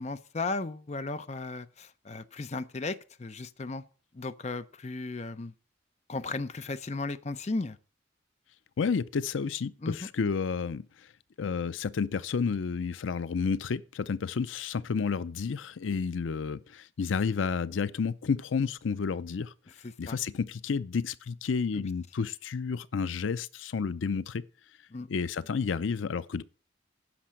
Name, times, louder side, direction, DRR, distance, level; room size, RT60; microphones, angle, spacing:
voice 1, 0.0-3.8 4.1-5.5 6.1-7.8 9.8-10.0 19.8-20.2 21.7-21.9 24.9-25.1, left 3 dB, 35° left, 0.5 m, -35 dB
voice 2, 8.8-11.1 11.4-19.5 20.0-24.4 25.1-26.4, left 5 dB, 85° left, 0.5 m, -31 dB
10.0 x 6.0 x 7.5 m
head